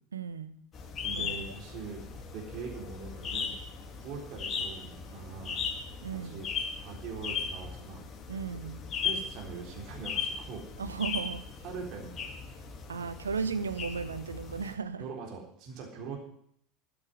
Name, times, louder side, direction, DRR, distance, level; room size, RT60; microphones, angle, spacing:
voice 1, 0.1-0.5 1.1-1.5 6.0-6.4 8.3-8.8 10.8-11.4 12.9-15.0, right 5 dB, 80° right, 12 dB, 1.1 m, -35 dB
sound 1, 0.7-14.8, left 6 dB, 35° left, 2.8 m, -38 dB
voice 2, 1.0-2.1 2.3-3.6 4.0-5.6 6.1-6.5 6.8-8.1 9.0-10.7 11.6-12.4 15.0-16.2, right 5 dB, 50° right, 0 dB, 3.9 m, -42 dB
12.5 x 8.6 x 9.7 m, 0.66 s
figure-of-eight pair, 75°, 0 cm